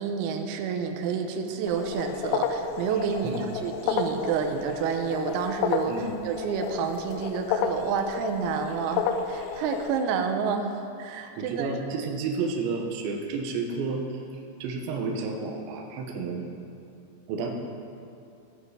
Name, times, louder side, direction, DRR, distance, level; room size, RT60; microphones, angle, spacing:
voice 1, 0.0-11.7 12.0-12.1, right 6 dB, 90° right, 5 dB, 3.6 m, -29 dB
sound 1, 1.7-10.0, left 6 dB, 85° left, 2.7 m, -31 dB
voice 2, 11.4-14.0 14.6-16.5 17.3-17.5, right 4 dB, 75° right, 1 dB, 3.0 m, -31 dB
17.5 x 7.4 x 4.9 m, 2.5 s
omnidirectional pair, 6.0 m